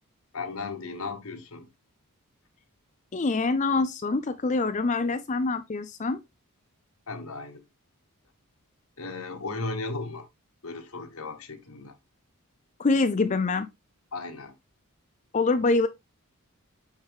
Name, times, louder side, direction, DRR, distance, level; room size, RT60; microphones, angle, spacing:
voice 1, 0.3-1.7 7.1-7.6 9.0-10.3 10.6-12.0 14.1-14.5, left 3 dB, 75° left, 1.3 m, -36 dB
voice 2, 3.1-6.2 12.8-13.7 15.3-15.9, left 3 dB, 35° left, 0.5 m, -25 dB
8.9 x 4.6 x 3.5 m
head